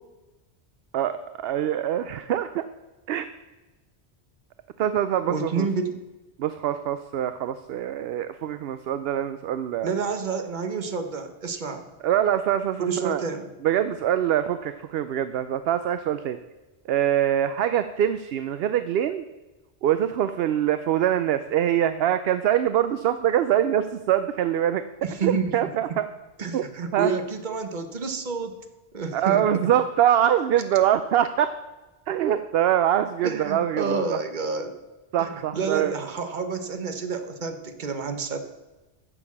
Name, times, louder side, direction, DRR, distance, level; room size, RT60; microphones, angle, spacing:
voice 1, 0.9-2.6 3.1-3.3 4.8-5.7 6.4-9.9 12.0-13.2 13.6-16.4 16.9-19.2 19.8-24.8 25.2-26.1 26.5-26.6 26.9-27.1 29.1-31.5 32.1-34.2 35.1-35.9, right 10 dB, 65° right, 11 dB, 0.7 m, -24 dB
voice 2, 5.3-6.0 9.8-11.9 12.8-13.5 25.0-25.5 26.4-28.6 28.9-29.7 33.2-34.8 35.2-38.4, right 5 dB, 45° right, 8 dB, 1.1 m, -29 dB
9.9 x 7.0 x 7.2 m, 1.1 s
omnidirectional pair, 1.1 m